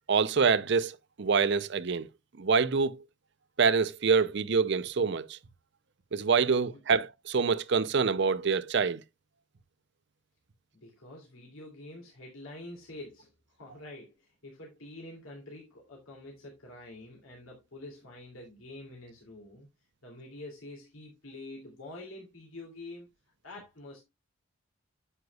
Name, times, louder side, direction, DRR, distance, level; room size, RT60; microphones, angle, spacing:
voice 1, 0.1-2.1 2.4-3.0 3.6-5.4 6.1-9.0, right 5 dB, 55° right, 0.6 m, -26 dB
voice 2, 10.8-19.7 20.0-23.1 23.4-24.0, left 2 dB, 80° left, 2.7 m, -47 dB
9.8 x 7.9 x 2.3 m
head